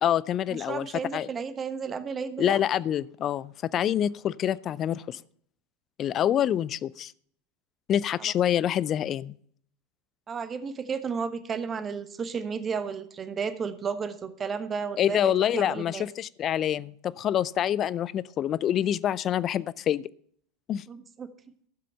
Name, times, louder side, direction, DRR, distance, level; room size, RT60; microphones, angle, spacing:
voice 1, 0.0-0.9 1.1-1.3 2.4-5.2 6.0-7.1 7.9-9.4 15.0-20.1 20.7-20.8, left 10 dB, 35° left, 21 dB, 0.4 m, -26 dB
voice 2, 0.5-2.6 8.2-8.3 10.3-16.0 20.9-21.3, right 6 dB, 25° right, 11 dB, 1.1 m, -33 dB
13.0 x 7.6 x 5.6 m, 0.63 s
figure-of-eight pair, 85°, 0 cm